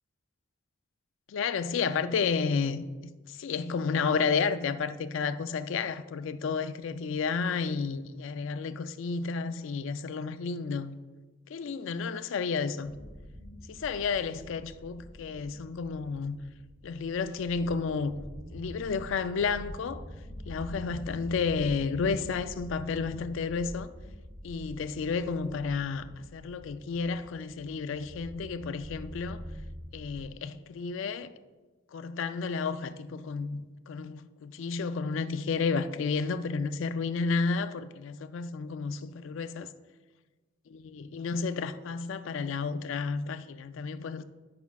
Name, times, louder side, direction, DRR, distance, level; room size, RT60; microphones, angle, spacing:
voice 1, 1.3-2.9 3.3-11.0 11.5-12.9 13.7-16.4 16.8-18.2 18.5-20.0 20.5-23.9 24.4-29.4 29.9-31.3 31.9-39.7 40.7-44.2, left 5 dB, 65° left, 0.3 m, -31 dB
sound 1, 12.8-30.2, equal, 15° right, 0.6 m, -45 dB
9.2 x 5.7 x 2.3 m
head